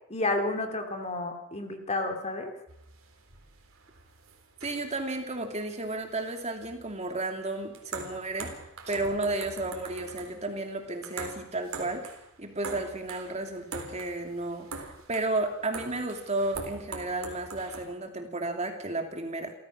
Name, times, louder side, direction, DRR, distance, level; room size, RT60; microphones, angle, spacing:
voice 1, 0.1-2.5, left 2 dB, 30° left, 5 dB, 2.7 m, -31 dB
sound 1, 2.7-17.9, right 4 dB, 65° right, 3.8 m, -44 dB
voice 2, 4.6-8.6 8.9-12.1 12.4-19.5, right 2 dB, 30° right, 5 dB, 2.6 m, -33 dB
28.5 x 14.5 x 6.4 m, 0.75 s
head